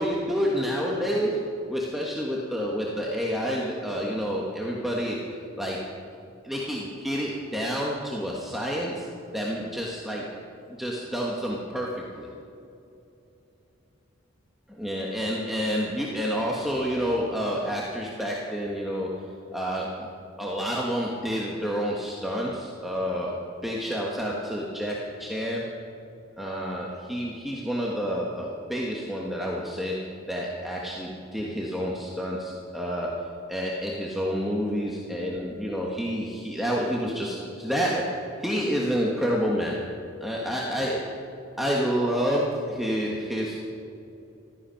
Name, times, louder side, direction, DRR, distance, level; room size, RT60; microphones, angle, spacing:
voice 1, 0.0-1.4 1.7-5.2 5.6-5.8 6.4-9.1 9.3-10.3 10.8-12.3 14.7-19.1 19.5-20.1 20.4-23.4 23.6-25.7 26.4-39.9 40.2-41.2 41.6-43.7, equal, ahead, -4 dB, 1.3 m, -29 dB
15.5 x 13.5 x 5.8 m, 2.8 s
head